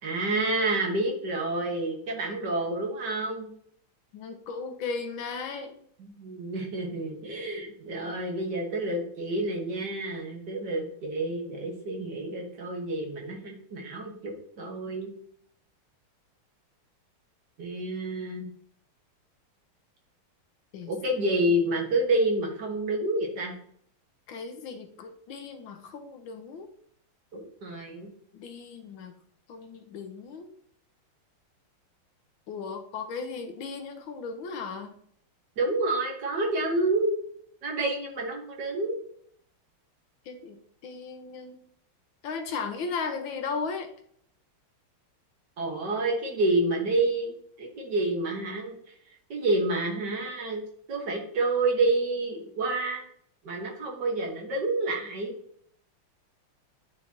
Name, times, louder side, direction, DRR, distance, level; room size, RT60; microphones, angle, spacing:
voice 1, 0.0-3.5 6.0-15.1 17.6-18.5 20.9-23.5 27.3-28.1 35.6-37.2 37.6-39.0 45.6-48.9 49.3-50.6 50.9-53.0 53.4-55.3, right 2 dB, 55° right, 0 dB, 1.8 m, -29 dB
voice 2, 4.1-5.8 20.7-21.3 24.3-26.7 28.3-29.1 29.5-30.5 32.5-34.9 40.2-41.6 42.2-43.9, left 5 dB, 70° left, 6 dB, 1.5 m, -36 dB
9.9 x 4.0 x 3.0 m, 0.64 s
omnidirectional pair, 2.3 m